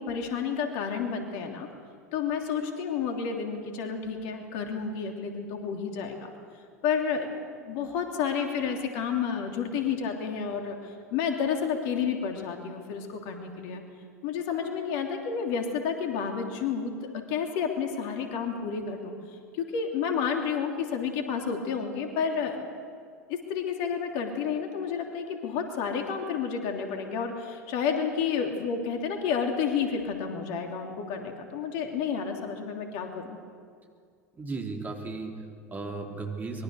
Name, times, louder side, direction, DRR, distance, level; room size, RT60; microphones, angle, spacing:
voice 1, 0.0-1.7 2.1-6.3 6.8-7.3 7.6-13.8 14.2-19.1 19.5-22.6 23.3-33.4, left 6 dB, 50° left, 3 dB, 3.1 m, -30 dB
voice 2, 34.3-36.6, right 3 dB, 20° right, 1 dB, 3.7 m, -36 dB
25.0 x 22.5 x 6.7 m, 2.1 s
figure-of-eight pair, 80°, 9 cm